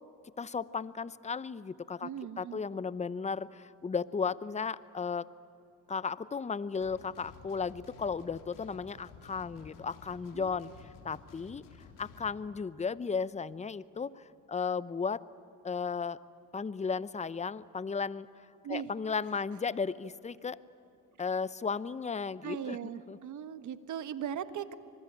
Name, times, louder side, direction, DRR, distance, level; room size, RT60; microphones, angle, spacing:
voice 1, 0.4-2.1 2.4-5.3 5.9-11.6 12.0-15.2 15.6-16.2 16.5-18.3 18.7-20.6 21.2-23.2, left 5 dB, 20° left, 17 dB, 0.7 m, -35 dB
voice 2, 2.0-2.6 10.3-10.8 18.6-18.9 22.4-24.7, right 9 dB, 60° right, 12 dB, 1.4 m, -39 dB
sound 1, 6.8-12.3, left 5 dB, 70° left, 3.7 m, -53 dB
25.5 x 21.5 x 8.8 m, 2.7 s
supercardioid pair, 80°, 34 cm